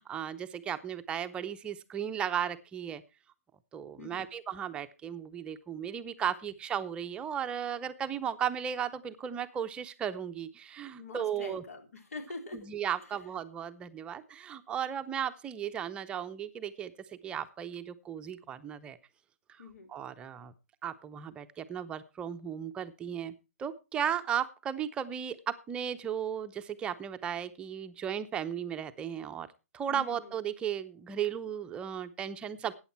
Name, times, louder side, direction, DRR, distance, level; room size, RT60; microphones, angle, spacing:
voice 1, 0.0-3.0 3.7-11.6 12.5-16.9 17.2-19.0 19.9-20.5 20.8-23.3 23.6-29.5 29.7-32.7, right 8 dB, 10° right, 10 dB, 0.7 m, -35 dB
voice 2, 4.0-4.3 11.0-12.6 19.6-19.9 29.9-30.3, left 3 dB, 70° left, 6 dB, 3.9 m, -44 dB
14.0 x 9.3 x 4.4 m, 0.29 s
figure-of-eight pair, 140°, 8 cm